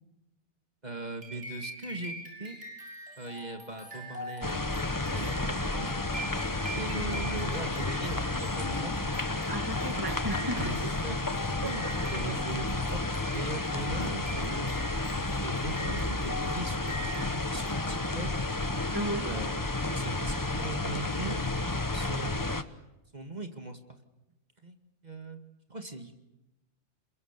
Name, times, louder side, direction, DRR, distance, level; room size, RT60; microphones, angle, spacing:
voice 1, 0.8-2.6 3.2-4.7 5.1-6.0 6.8-8.9 10.5-11.9 12.1-13.0 13.3-14.8 15.1-18.3 19.2-19.5 19.9-21.4 21.9-22.6 23.1-23.8 24.6-24.8 25.0-25.4 25.7-26.1, right 2 dB, 35° right, 2.3 m, -40 dB
sound 1, 1.2-18.3, equal, 75° right, 7.1 m, -43 dB
sound 2, 4.4-22.6, left 2 dB, 20° left, 1.1 m, -31 dB
voice 2, 9.5-10.7 11.6-12.1 18.9-19.3, right 1 dB, 20° right, 2.0 m, -35 dB
28.5 x 22.5 x 6.8 m
omnidirectional pair, 1.2 m